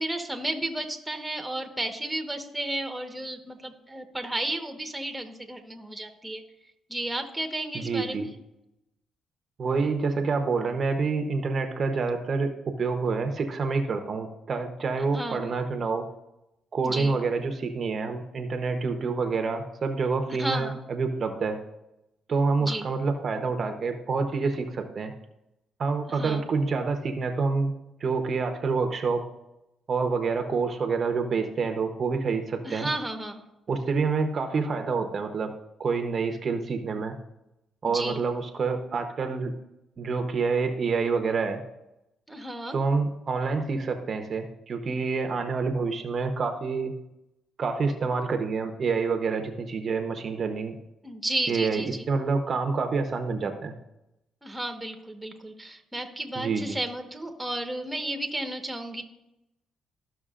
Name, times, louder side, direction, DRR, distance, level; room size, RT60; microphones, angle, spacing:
voice 1, 0.0-6.4 6.9-8.3 15.1-15.5 16.8-17.2 20.4-20.7 22.6-22.9 26.1-26.5 32.6-33.4 37.8-38.2 42.3-42.8 51.0-52.0 54.4-59.0, right 1 dB, 5° right, 4 dB, 1.2 m, -33 dB
voice 2, 7.7-8.3 9.6-16.0 16.7-21.6 22.3-25.1 25.8-27.7 28.0-29.2 29.9-32.9 33.7-35.5 35.8-37.2 37.8-39.5 40.0-41.6 42.7-46.9 47.6-50.7 51.5-53.7 56.4-56.8, right 4 dB, 45° right, 6 dB, 0.8 m, -27 dB
13.5 x 6.0 x 2.5 m, 0.88 s
cardioid pair, 90°, 0 cm